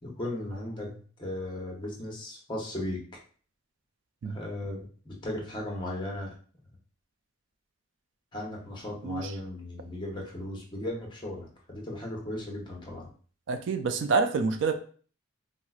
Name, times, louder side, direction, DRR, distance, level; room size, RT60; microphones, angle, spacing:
voice 1, 0.0-3.0 4.2-6.3 8.3-13.1, left 1 dB, 20° left, 0.7 m, -36 dB
voice 2, 13.5-14.7, right 4 dB, 65° right, 0.3 m, -27 dB
4.4 x 2.0 x 2.3 m
head